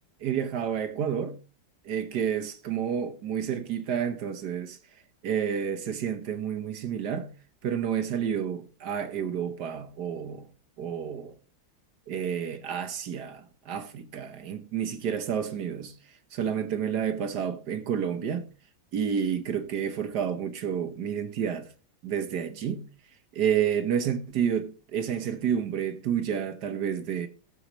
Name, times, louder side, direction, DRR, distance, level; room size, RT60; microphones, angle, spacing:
voice 1, 0.2-1.4 1.8-4.8 5.2-7.3 7.6-10.5 10.8-11.3 12.1-15.9 16.3-18.4 18.9-21.7 22.0-22.9 23.3-27.3, right 8 dB, 60° right, 1.4 m, -30 dB
18.0 x 7.1 x 3.0 m
omnidirectional pair, 2.1 m